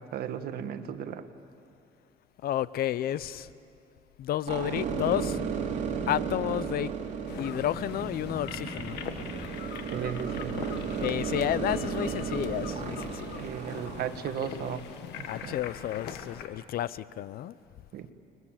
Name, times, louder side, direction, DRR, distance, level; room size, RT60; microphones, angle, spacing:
voice 1, 0.1-1.3 9.9-10.6 13.4-14.9 15.2-15.5 17.9-18.1, right 8 dB, 65° right, 9 dB, 1.5 m, -35 dB
voice 2, 2.4-3.5 4.2-5.4 6.1-6.9 7.4-9.0 11.0-13.4 15.3-17.5, left 12 dB, 65° left, 17 dB, 0.7 m, -31 dB
Machinery AG, 4.5-14.1, right 6 dB, 45° right, 3.5 m, -34 dB
sound 1, 7.3-16.5, left 8 dB, 80° left, 1.6 m, -42 dB
30.0 x 21.5 x 7.6 m, 2.5 s
cardioid pair, 110°, 17 cm